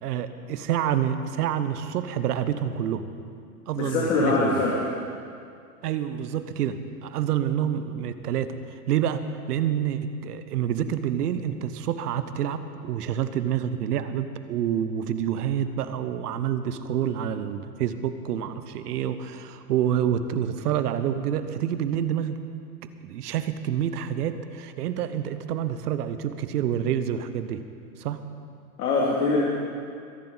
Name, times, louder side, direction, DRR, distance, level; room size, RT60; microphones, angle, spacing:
voice 1, 0.0-3.1 3.7-4.6 5.8-8.6 8.9-9.2 9.5-22.4 23.0-27.6 28.0-28.2, right 9 dB, 70° right, 11 dB, 1.1 m, -27 dB
voice 2, 3.8-4.8 28.8-29.4, left 3 dB, 70° left, -5 dB, 2.7 m, -23 dB
23.0 x 11.0 x 4.0 m, 2.3 s
hypercardioid pair, 110°, 48 cm